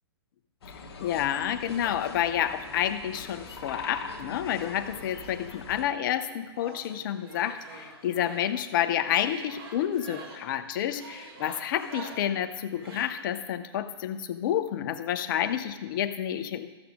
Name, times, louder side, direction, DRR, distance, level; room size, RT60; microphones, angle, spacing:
sound 1, 0.6-5.8, left 3 dB, 65° left, 1.4 m, -42 dB
voice 1, 1.0-16.7, left 10 dB, 50° left, 10 dB, 0.8 m, -29 dB
sound 2, 1.6-2.4 3.3-4.4 4.7-13.1, right 3 dB, 60° right, 2.3 m, -48 dB
14.0 x 7.1 x 3.7 m, 1.2 s
hypercardioid pair, 120°, 14 cm